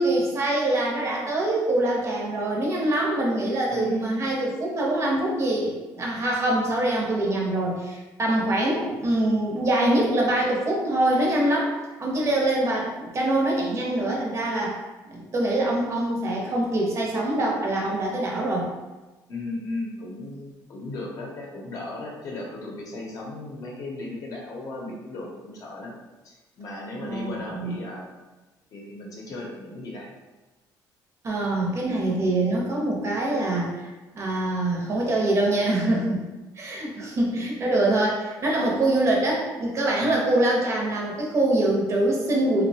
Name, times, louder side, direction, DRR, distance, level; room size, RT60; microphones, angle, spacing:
voice 1, 0.0-11.7 12.0-14.8 15.1-18.7 27.0-27.8 31.2-36.2 36.6-42.6, right 1 dB, 40° right, -2 dB, 0.6 m, -24 dB
voice 2, 3.7-4.2 19.3-25.9 26.2-28.0 28.7-30.1 37.2-37.5 40.0-40.2, left 2 dB, 50° left, -2 dB, 0.6 m, -36 dB
2.7 x 2.1 x 2.7 m, 1.2 s
cardioid pair, 135°, 8 cm